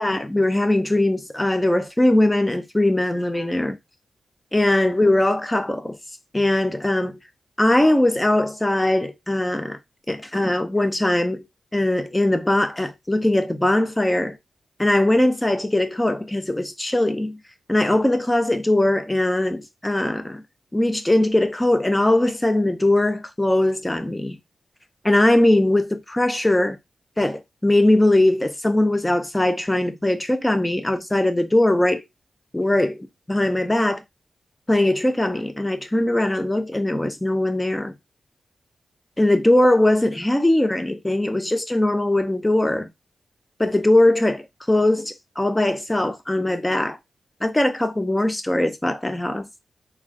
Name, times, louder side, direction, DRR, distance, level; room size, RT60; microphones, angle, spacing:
voice 1, 0.0-3.8 4.5-6.0 6.3-7.2 7.6-9.8 10.1-11.4 11.7-14.4 14.8-17.4 17.7-20.4 20.7-24.4 25.0-26.8 27.2-32.0 32.5-34.0 34.7-37.9 39.2-42.9 43.6-47.0 47.4-49.5, left 1 dB, 15° left, 0.5 m, -20 dB
3.5 x 2.3 x 2.4 m
cardioid pair, 80°, 0 cm